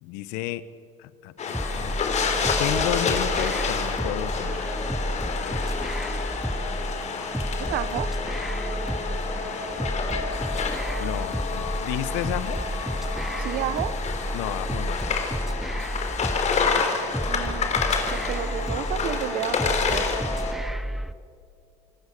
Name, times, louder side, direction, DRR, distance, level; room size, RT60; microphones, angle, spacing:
voice 1, 0.0-0.6 1.0-2.0 2.6-4.7 11.0-12.6 14.3-15.1, left 14 dB, 70° left, 16 dB, 1.1 m, -32 dB
sound 1, 1.4-20.5, left 5 dB, 40° left, 3.8 m, -29 dB
sound 2, 1.5-21.1, equal, ahead, 0.9 m, -31 dB
voice 2, 7.7-8.1 13.4-13.9 17.3-17.8 18.1-20.1, right 13 dB, 60° right, 16 dB, 1.2 m, -31 dB
28.0 x 19.0 x 6.8 m, 2.3 s
hypercardioid pair, 80°, 18 cm